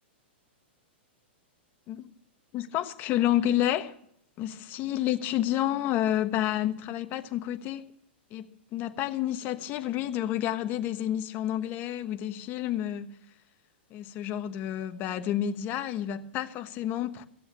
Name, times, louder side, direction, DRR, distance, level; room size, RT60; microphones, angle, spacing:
voice 1, 2.5-3.9 4.4-7.9 8.3-13.1 13.9-17.2, left 12 dB, 30° left, 1.2 m, -30 dB
15.5 x 7.9 x 8.6 m
hypercardioid pair, 140°, 6 cm